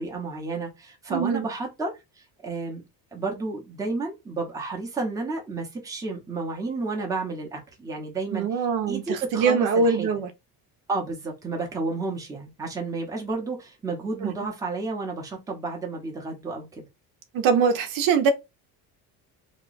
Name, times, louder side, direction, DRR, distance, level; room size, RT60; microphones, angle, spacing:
voice 1, 0.0-2.8 3.1-10.2 10.9-16.8, right 3 dB, 10° right, 0.8 m, -31 dB
voice 2, 1.1-1.5 8.3-10.3 14.2-14.3 17.3-18.3, right 5 dB, 60° right, 0.8 m, -23 dB
3.0 x 2.3 x 3.8 m
cardioid pair, 170°, 38 cm